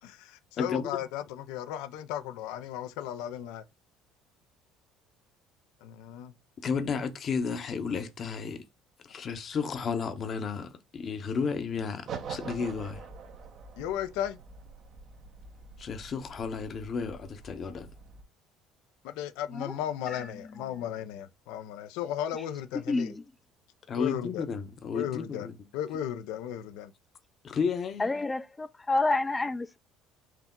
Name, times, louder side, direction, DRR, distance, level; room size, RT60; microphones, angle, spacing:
voice 1, 0.0-3.6 5.8-6.3 13.8-14.4 19.0-23.1 24.0-24.4 24.9-25.5 25.7-26.9, left 11 dB, 75° left, 0.5 m, -35 dB
voice 2, 0.6-0.9 6.6-8.6 9.0-13.0 15.8-17.9 23.9-25.5 27.4-28.1, left 5 dB, 45° left, 0.9 m, -32 dB
sound 1, 12.1-18.2, right 5 dB, 60° right, 0.9 m, -44 dB
voice 3, 22.7-23.2 28.0-29.8, left 2 dB, 20° left, 0.4 m, -29 dB
4.6 x 2.8 x 3.6 m
hypercardioid pair, 70°, 0 cm